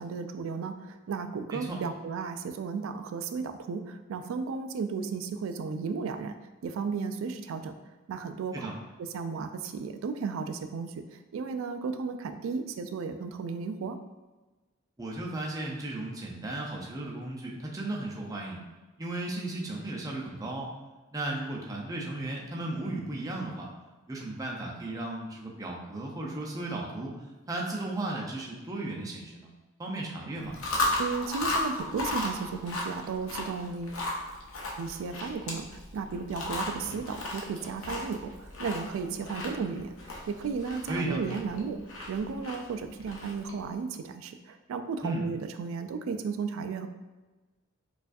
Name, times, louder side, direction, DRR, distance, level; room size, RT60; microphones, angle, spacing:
voice 1, 0.0-6.3 6.6-7.7 8.1-8.7 9.1-14.0 31.0-34.0 34.8-39.9 40.3-41.8 42.1-46.9, right 5 dB, 80° right, 8 dB, 0.3 m, -34 dB
voice 2, 15.0-18.6 19.0-20.7 21.1-23.7 24.1-29.5 29.8-30.6 40.9-41.2 45.0-45.3, right 2 dB, 15° right, -2 dB, 0.5 m, -35 dB
Chewing mastication, 30.4-43.6, left 2 dB, 85° left, 0.7 m, -35 dB
4.5 x 2.4 x 2.5 m, 1.2 s
head